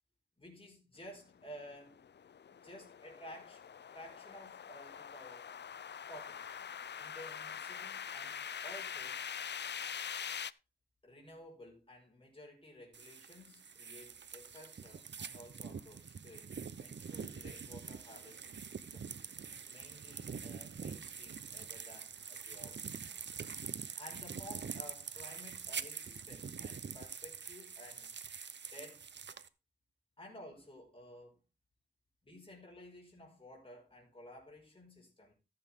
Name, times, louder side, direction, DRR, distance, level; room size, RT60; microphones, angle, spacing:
voice 1, 0.4-2.0 2.5-3.6 3.9-5.5 6.1-6.7 7.0-9.2 11.0-19.1 19.7-23.3 24.0-28.1 28.7-29.0 30.2-31.4 32.2-35.3, left 1 dB, 30° left, 5.1 m, -54 dB
sound 1, 1.4-10.5, left 7 dB, 75° left, 0.4 m, -44 dB
sound 2, 12.9-29.5, right 6 dB, 80° right, 0.7 m, -45 dB
14.5 x 7.7 x 3.6 m
wide cardioid pair, 100°, 18 cm